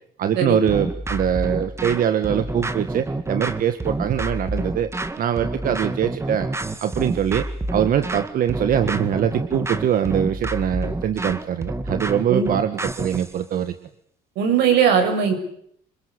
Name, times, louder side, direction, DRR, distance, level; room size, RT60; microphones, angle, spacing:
voice 1, 0.2-4.9 5.2-6.5 6.8-7.5 7.7-13.7, right 9 dB, 60° right, 10 dB, 1.7 m, -23 dB
sound 1, 0.7-13.3, right 2 dB, 15° right, 2.0 m, -28 dB
voice 2, 14.4-15.3, right 7 dB, 85° right, 5 dB, 7.1 m, -19 dB
27.0 x 21.5 x 8.4 m, 0.68 s
cardioid pair, 110°, 17 cm